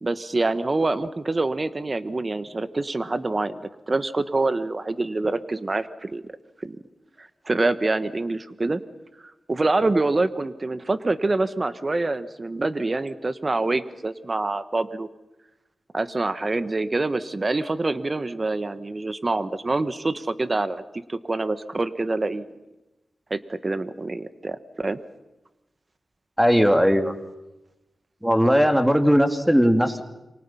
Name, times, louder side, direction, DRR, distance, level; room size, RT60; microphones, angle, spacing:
voice 1, 0.0-6.3 6.6-6.8 7.2-8.8 9.5-15.1 15.9-20.8 21.1-22.5 23.3-25.0, right 2 dB, 35° right, 12 dB, 1.4 m, -26 dB
voice 2, 26.4-27.1 28.2-30.0, equal, 5° right, 7 dB, 2.5 m, -18 dB
28.0 x 25.0 x 5.7 m, 0.98 s
cardioid pair, 70°, 0 cm